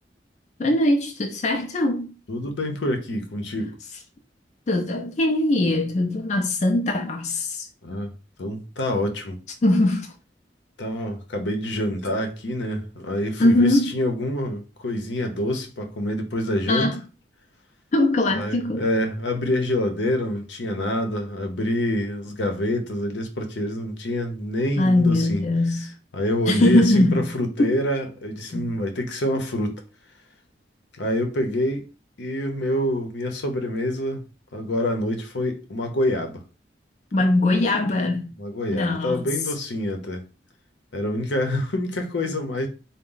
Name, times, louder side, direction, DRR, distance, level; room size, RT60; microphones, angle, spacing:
voice 1, 0.6-2.2 4.7-7.7 9.6-10.1 13.4-13.9 16.7-17.0 17.9-18.8 24.8-25.9 26.5-27.3 27.6-27.7 28.5-28.7 37.1-38.3 38.7-39.3, left 1 dB, 40° left, 0.4 m, -21 dB
voice 2, 2.3-3.7 7.8-8.1 8.4-9.4 10.8-16.9 18.3-25.4 26.1-29.8 30.9-31.9 32.2-34.2 34.5-36.4 38.4-40.2 40.9-42.7, left 1 dB, 85° left, 0.8 m, -26 dB
4.0 x 2.1 x 3.8 m
head